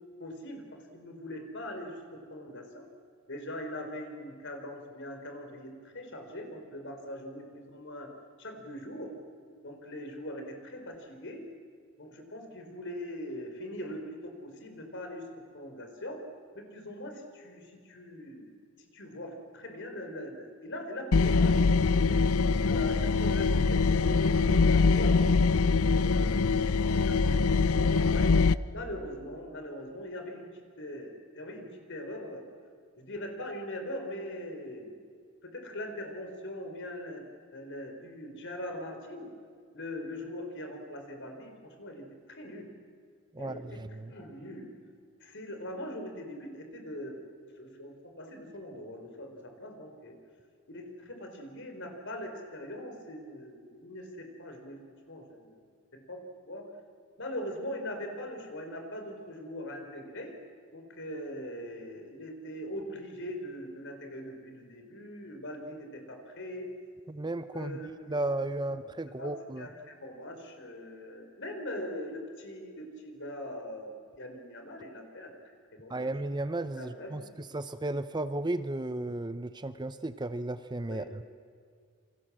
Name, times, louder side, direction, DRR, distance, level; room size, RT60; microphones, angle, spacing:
voice 1, 0.2-2.0 2.3-2.9 3.3-8.1 8.4-9.1 9.6-11.4 12.0-15.2 15.5-16.2 16.5-18.5 18.9-22.2 22.6-25.3 25.6-28.3 28.7-30.5 30.8-32.4 33.0-34.9 35.4-37.2 37.5-39.3 39.7-42.7 43.4-43.8 44.1-44.7 45.2-47.2 47.6-50.1 50.7-54.8 55.1-55.6 56.1-56.2 56.5-56.7 57.2-60.4 60.7-66.7 67.5-68.2 69.2-75.3 75.7-76.1 76.7-77.4 80.9-81.1, left 1 dB, 55° left, 5 dB, 4.4 m, -41 dB
sound 1, 21.1-28.5, left 4 dB, 75° left, 0.6 m, -24 dB
voice 2, 43.3-44.1 67.1-67.8 68.1-69.7 75.9-81.2, right 2 dB, 20° right, 12 dB, 0.6 m, -34 dB
28.5 x 24.5 x 7.5 m, 2.1 s
head